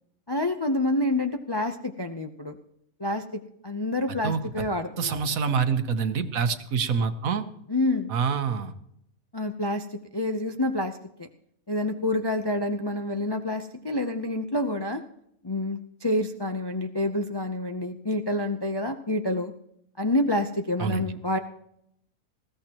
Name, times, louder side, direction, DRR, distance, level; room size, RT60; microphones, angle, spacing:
voice 1, 0.3-2.5 3.0-5.2 7.7-8.1 9.3-9.8 10.1-10.9 11.2-11.3 11.7-15.0 15.4-19.5 20.0-21.4, left 1 dB, 30° left, 5 dB, 0.4 m, -28 dB
voice 2, 4.1-4.7 5.0-7.4 8.1-8.7 20.8-21.0, right 6 dB, 70° right, 9 dB, 1.4 m, -26 dB
20.0 x 15.5 x 3.0 m, 0.75 s
omnidirectional pair, 1.5 m